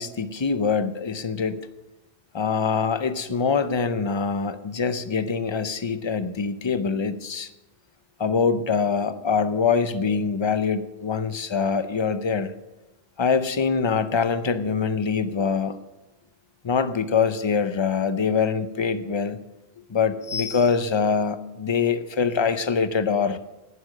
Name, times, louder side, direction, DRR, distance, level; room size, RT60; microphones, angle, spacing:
voice 1, 0.0-1.6 2.3-7.5 8.2-12.5 13.2-15.8 16.6-19.4 19.9-23.4, left 5 dB, 30° left, 12 dB, 0.6 m, -24 dB
11.5 x 9.7 x 6.5 m, 1.0 s
omnidirectional pair, 1.1 m